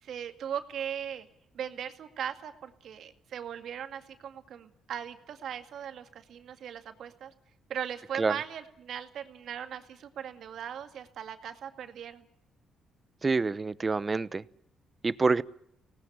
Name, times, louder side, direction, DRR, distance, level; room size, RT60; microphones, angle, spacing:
voice 1, 0.0-1.3 1.5-7.3 7.7-12.3, right 9 dB, 70° right, 8 dB, 2.1 m, -39 dB
voice 2, 13.2-14.4 15.0-15.4, right 4 dB, 30° right, 17 dB, 0.9 m, -27 dB
23.5 x 18.5 x 8.8 m, 0.74 s
cardioid pair, 90°, 0 cm